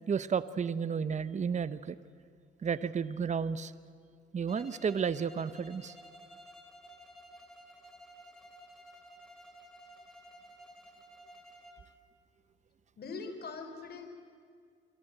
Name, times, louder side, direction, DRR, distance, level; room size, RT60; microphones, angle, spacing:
voice 1, 0.1-2.0 2.6-3.7 4.3-5.9, right 6 dB, 35° right, 14 dB, 0.9 m, -32 dB
Bowed string instrument, 4.5-11.9, equal, ahead, 3.7 m, -53 dB
voice 2, 13.0-14.1, left 4 dB, 55° left, 7 dB, 4.0 m, -42 dB
25.5 x 24.5 x 8.0 m, 2.1 s
cardioid pair, 90°, 20 cm